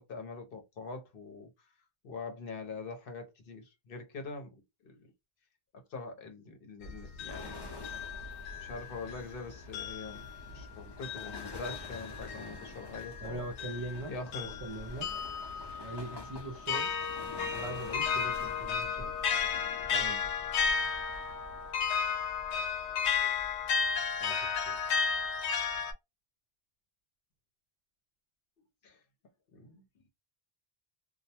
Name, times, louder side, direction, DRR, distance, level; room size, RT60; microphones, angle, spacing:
voice 1, 0.0-1.5 2.0-4.6 4.8-5.1 5.7-7.6 8.6-13.4 14.1-14.5 16.1-16.3 28.8-29.0 29.5-29.8, left 3 dB, 60° left, 0.9 m, -43 dB
sound 1, 6.8-9.3 9.7-25.9, left 6 dB, 85° left, 0.9 m, -34 dB
sound 2, 7.3-21.7, left 2 dB, 30° left, 0.5 m, -49 dB
voice 2, 13.2-15.1 15.8-17.0 17.5-19.1 19.9-20.3 24.2-24.8, right 2 dB, 40° right, 0.5 m, -42 dB
2.3 x 2.1 x 2.7 m
omnidirectional pair, 1.1 m